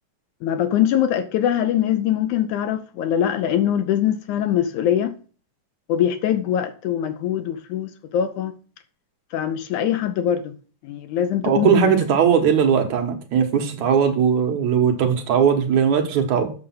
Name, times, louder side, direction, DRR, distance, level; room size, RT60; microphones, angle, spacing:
voice 1, 0.4-5.1 5.9-8.5 9.3-10.6 10.8-12.0, left 10 dB, 75° left, 2.1 m, -22 dB
voice 2, 11.4-16.5, right 7 dB, 65° right, 2.4 m, -19 dB
8.6 x 6.7 x 5.7 m
omnidirectional pair, 3.9 m